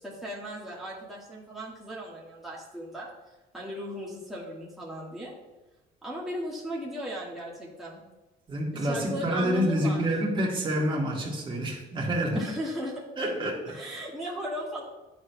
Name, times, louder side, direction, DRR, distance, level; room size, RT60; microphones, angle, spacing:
voice 1, 0.0-3.1 3.5-5.3 6.0-8.0 8.8-10.0 12.4-13.0 13.7-14.8, equal, ahead, -6 dB, 1.5 m, -37 dB
voice 2, 8.5-12.5 13.2-14.0, equal, 30° right, -2 dB, 1.6 m, -28 dB
9.8 x 4.4 x 2.2 m, 1.1 s
cardioid pair, 110°, 17 cm